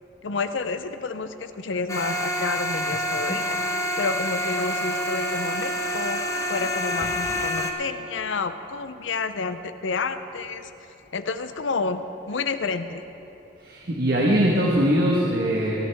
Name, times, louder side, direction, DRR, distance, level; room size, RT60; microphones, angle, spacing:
voice 1, 0.2-3.6 4.0-6.2 6.5-10.7 11.1-12.0 12.3-13.0, left 4 dB, 80° left, 10 dB, 0.6 m, -29 dB
sound 1, 1.9-7.7, equal, 15° left, 0.9 m, -27 dB
voice 2, 13.6-15.9, equal, 55° right, -3 dB, 1.3 m, -21 dB
19.5 x 11.0 x 3.5 m, 2.9 s
head